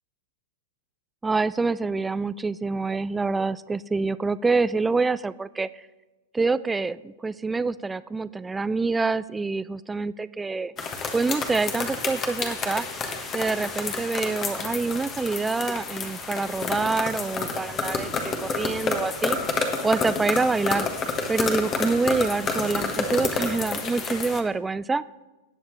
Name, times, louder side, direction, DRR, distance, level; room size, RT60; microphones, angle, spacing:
voice 1, 1.2-5.7 6.3-10.7 11.1-12.9 13.3-19.4 19.8-20.9 21.3-25.0, right 3 dB, 10° right, 17 dB, 0.3 m, -26 dB
sound 1, 10.8-24.4, left 4 dB, 30° left, 1.4 m, -29 dB
18.0 x 7.2 x 3.2 m, 1.1 s
hypercardioid pair, 105°, 0 cm